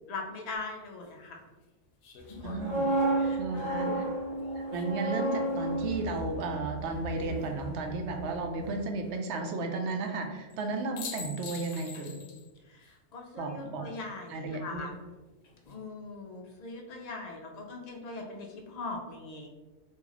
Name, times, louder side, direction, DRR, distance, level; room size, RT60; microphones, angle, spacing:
voice 1, 0.1-1.5 2.3-2.7 3.1-4.0 12.6-14.9 15.7-19.5, left 3 dB, 90° left, 2 dB, 0.3 m, -41 dB
sound 1, 0.5-0.6 2.0-5.2 7.1-7.7 10.5-10.6 11.0-12.5 12.8-12.9 15.2-15.7, left 5 dB, 70° left, 0.8 m, -46 dB
sound 2, 2.4-8.3 8.6-8.8, right 1 dB, 40° right, 1.0 m, -32 dB
voice 2, 2.4-2.8 3.4-4.0 4.6-12.2 13.4-13.9 14.3-14.9, right 3 dB, 70° right, 4 dB, 0.8 m, -34 dB
2.9 x 2.6 x 3.8 m, 1.2 s
omnidirectional pair, 1.2 m